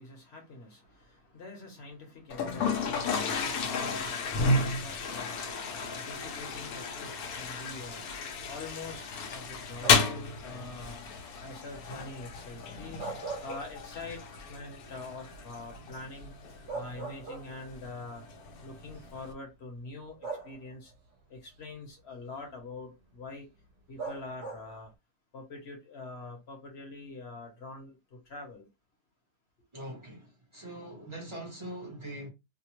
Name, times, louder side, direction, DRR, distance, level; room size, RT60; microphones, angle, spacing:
voice 1, 0.0-4.4 4.8-8.0 8.5-11.0 11.4-13.0 13.4-16.3 16.7-18.2 18.6-20.9 21.3-23.5 23.9-24.9 25.3-28.7, left 3 dB, 50° left, 1.0 m, -45 dB
Toilet flush, 2.3-19.3, left 4 dB, 75° left, 1.0 m, -33 dB
sound 1, 9.8-10.3 12.8-14.2 14.6-14.7 16.2-16.3 16.7-17.8 18.8-19.0 20.2-20.9 24.0-24.9, right 4 dB, 55° right, 0.9 m, -40 dB
voice 2, 29.7-32.3, right 1 dB, 25° right, 0.6 m, -42 dB
2.8 x 2.0 x 2.9 m
omnidirectional pair, 1.6 m